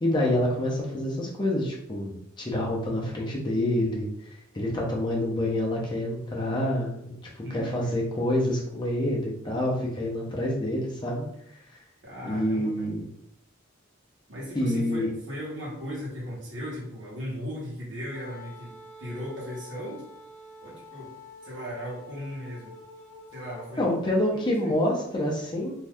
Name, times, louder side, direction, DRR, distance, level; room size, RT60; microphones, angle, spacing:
voice 1, 0.0-7.0 7.3-11.3 12.2-13.1 14.5-15.1 23.8-25.7, left 1 dB, 20° left, -3 dB, 0.6 m, -27 dB
voice 2, 7.4-8.0 12.0-12.9 14.3-20.0 20.6-21.1 21.4-22.7 23.3-23.9 24.3-24.8, equal, 60° right, -4 dB, 1.1 m, -37 dB
Wind instrument woodwind instrument, 18.1-24.1, left 2 dB, 55° left, 0.9 m, -48 dB
2.7 x 2.3 x 3.4 m, 0.76 s
head